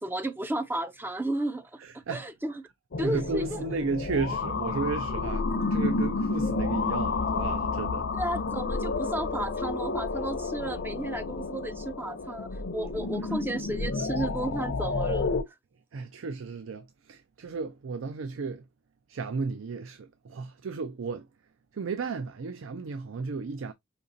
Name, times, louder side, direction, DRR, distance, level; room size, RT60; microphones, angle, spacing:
voice 1, 0.0-1.7 2.1-2.6 3.0-3.6 4.6-4.7 5.5-5.8 8.2-15.5, right 1 dB, 10° right, 0.3 m, -33 dB
voice 2, 1.8-2.3 3.0-8.1 15.9-18.6 19.1-21.3 21.8-23.7, right 4 dB, 75° right, 0.4 m, -34 dB
sound 1, 2.9-15.4, left 3 dB, 60° left, 0.6 m, -30 dB
5.2 x 2.8 x 2.6 m
head